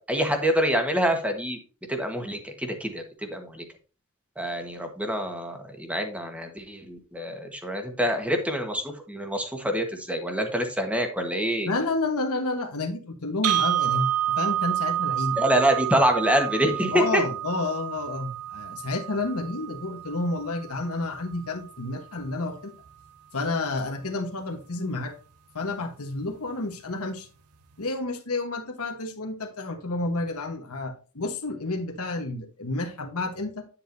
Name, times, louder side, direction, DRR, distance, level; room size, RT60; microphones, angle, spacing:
voice 1, 0.0-1.6 1.9-3.6 4.4-11.7 15.3-17.2, equal, 5° right, 1.4 m, -26 dB
voice 2, 11.6-15.4 16.9-22.7 23.3-25.1 25.5-27.3 27.8-33.6, left 2 dB, 75° left, 1.3 m, -30 dB
sound 1, 13.4-21.5, right 12 dB, 80° right, 0.6 m, -29 dB
10.0 x 7.2 x 2.7 m
head